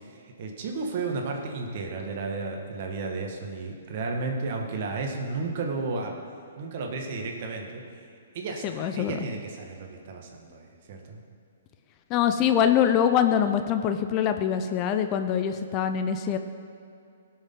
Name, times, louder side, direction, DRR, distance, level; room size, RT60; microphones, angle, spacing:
voice 1, 0.1-6.1 6.6-7.8 8.3-11.2, right 3 dB, 50° right, 2 dB, 1.6 m, -33 dB
voice 2, 8.6-9.2 12.1-16.4, left 9 dB, 30° left, 8 dB, 0.5 m, -24 dB
17.0 x 6.4 x 3.8 m, 2.5 s
hypercardioid pair, 135°, 0 cm